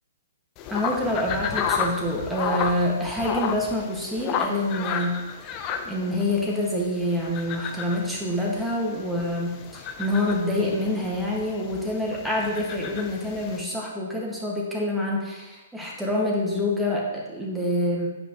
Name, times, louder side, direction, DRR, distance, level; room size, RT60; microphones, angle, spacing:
sound 1, 0.6-13.6, left 7 dB, 35° left, 0.7 m, -33 dB
voice 1, 0.7-5.2 5.4-5.6 5.9-18.1, left 1 dB, 5° right, -4 dB, 1.6 m, -26 dB
9.2 x 5.0 x 2.9 m, 1.1 s
hypercardioid pair, 125°, 0 cm